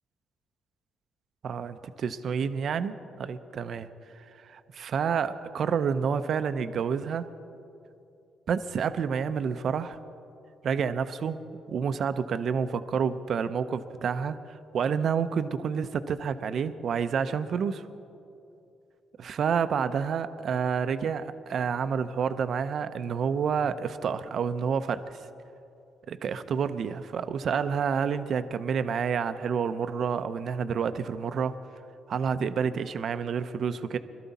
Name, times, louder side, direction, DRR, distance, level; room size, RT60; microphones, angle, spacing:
voice 1, 1.4-3.9 4.4-7.3 8.5-10.0 10.6-11.4 11.7-14.4 14.7-17.9 19.2-25.0 26.1-31.5 32.1-34.0, right 6 dB, 60° right, 12 dB, 0.6 m, -29 dB
22.0 x 13.0 x 4.1 m, 2.7 s
cardioid pair, 90°, 0 cm